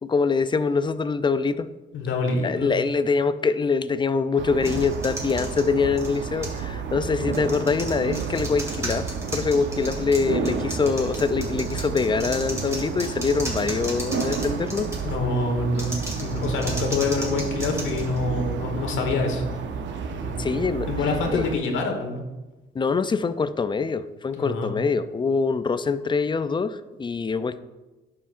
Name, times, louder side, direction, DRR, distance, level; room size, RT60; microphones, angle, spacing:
voice 1, 0.0-1.7 2.4-14.9 20.4-20.9 21.3-21.5 22.7-27.6, left 4 dB, 25° left, 13 dB, 0.4 m, -24 dB
voice 2, 1.9-2.7 15.0-19.4 20.2-20.5 20.9-22.2 24.3-24.7, left 3 dB, 80° left, 3 dB, 1.4 m, -26 dB
sound 1, 4.4-21.6, right 6 dB, 70° right, 0.7 m, -31 dB
sound 2, 4.6-6.7 7.3-15.2 15.7-18.6, right 1 dB, 15° right, 2.0 m, -35 dB
11.0 x 5.7 x 2.5 m, 1.1 s
cardioid pair, 90°, 20 cm